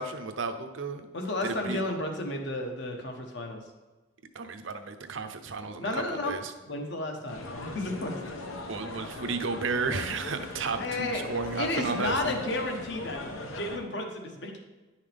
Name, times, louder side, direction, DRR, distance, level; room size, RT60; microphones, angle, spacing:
voice 1, 0.0-1.1 1.4-1.8 4.3-6.5 8.7-12.4, right 4 dB, 70° right, 7 dB, 0.7 m, -33 dB
voice 2, 1.1-3.6 5.8-6.3 6.7-8.2 10.8-11.2 11.6-14.6, left 2 dB, 55° left, 3 dB, 1.1 m, -32 dB
sound 1, 7.3-13.8, left 2 dB, 85° left, 1.0 m, -39 dB
10.5 x 5.6 x 3.4 m, 1.2 s
head